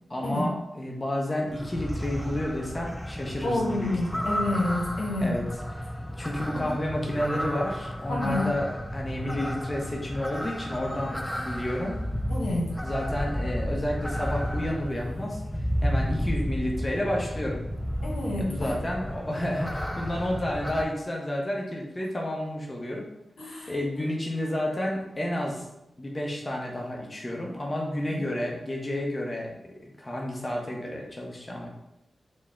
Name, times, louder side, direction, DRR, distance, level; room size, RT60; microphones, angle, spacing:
voice 1, 0.1-4.3 5.2-5.4 6.2-12.0 12.8-15.4 15.8-17.6 18.4-23.0 23.7-25.6 26.0-31.7, left 1 dB, 30° left, -1 dB, 0.8 m, -31 dB
sound 1, 1.5-20.8, equal, 5° left, 0.4 m, -32 dB
voice 2, 3.4-5.3 6.5-6.6 8.1-8.5 12.3-12.7 18.0-18.7 23.4-23.7 28.1-28.2, left 1 dB, 90° left, -4 dB, 1.0 m, -29 dB
4.2 x 2.1 x 3.7 m, 0.88 s
cardioid pair, 50°, 0 cm